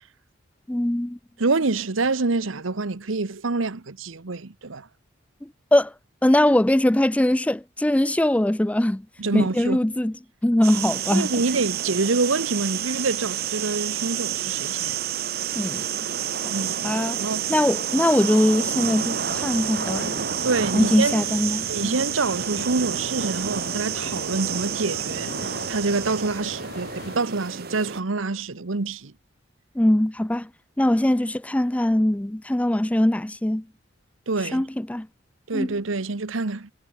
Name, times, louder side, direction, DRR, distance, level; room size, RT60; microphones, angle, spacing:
voice 1, 0.7-1.2 5.7-5.9 6.2-9.0 9.3-10.1 10.4-11.3 15.5-15.8 16.8-17.2 17.5-20.1 20.7-22.0 29.8-30.5 30.8-33.6 34.5-35.1 35.5-35.7, left 1 dB, 5° left, 0.4 m, -21 dB
voice 2, 1.4-4.9 9.2-9.8 11.1-15.0 16.5-17.5 20.4-21.2 21.7-29.1 34.3-34.6 35.5-36.7, right 3 dB, 85° right, 1.1 m, -26 dB
sound 1, 10.6-28.0, right 9 dB, 50° right, 1.1 m, -29 dB
sound 2, 19.3-27.2, left 3 dB, 65° left, 1.6 m, -39 dB
head